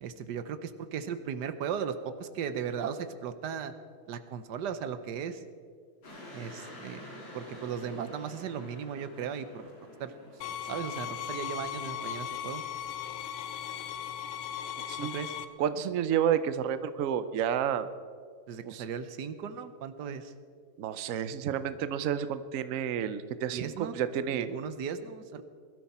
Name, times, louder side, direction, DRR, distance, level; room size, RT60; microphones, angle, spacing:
voice 1, 0.0-3.7 4.1-5.4 6.3-7.1 7.3-9.7 10.0-10.1 10.6-12.6 15.0-15.3 18.5-20.3 23.5-24.0 24.3-25.4, right 7 dB, 65° right, 11 dB, 1.2 m, -37 dB
sound 1, 6.0-10.5, left 1 dB, 65° left, 3.9 m, -48 dB
sound 2, 10.4-15.5, left 10 dB, 80° left, 1.6 m, -37 dB
voice 2, 15.6-17.9 18.6-18.8 20.8-24.5, right 9 dB, 85° right, 12 dB, 0.7 m, -30 dB
21.0 x 13.0 x 4.3 m, 2.1 s
omnidirectional pair, 2.3 m